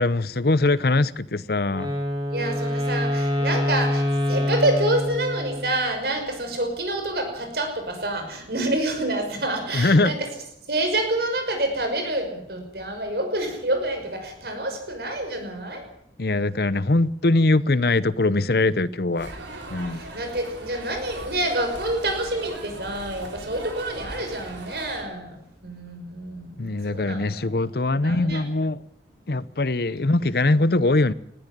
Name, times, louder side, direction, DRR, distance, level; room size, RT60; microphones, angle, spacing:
voice 1, 0.0-1.9 9.7-10.1 16.2-19.3 19.7-20.0 26.6-28.8 29.3-31.1, left 2 dB, 55° left, 0.8 m, -22 dB
Wind instrument woodwind instrument, 1.7-5.9, left 1 dB, 25° right, 5.7 m, -25 dB
voice 2, 2.3-10.3 10.7-15.9 19.9-27.7 28.0-28.4, right 1 dB, 60° right, 5.8 m, -27 dB
sound 1, 19.1-25.0, right 2 dB, 90° right, 4.5 m, -39 dB
20.0 x 14.5 x 9.5 m
head